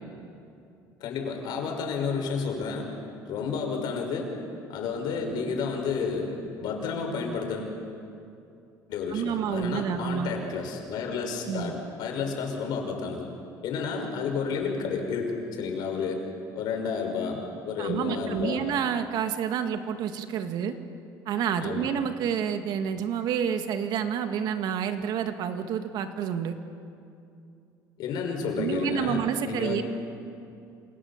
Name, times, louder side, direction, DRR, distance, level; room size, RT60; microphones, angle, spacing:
voice 1, 1.0-2.9 3.2-4.3 4.7-7.7 8.9-13.3 13.6-16.2 16.6-18.6 21.6-21.9 28.0-29.8, left 5 dB, 70° left, 3 dB, 5.9 m, -31 dB
voice 2, 9.1-10.3 11.5-11.7 17.8-20.8 21.3-26.5 28.6-29.8, right 8 dB, 70° right, 7 dB, 1.9 m, -29 dB
28.0 x 27.5 x 7.4 m, 2.6 s
cardioid pair, 110°, 8 cm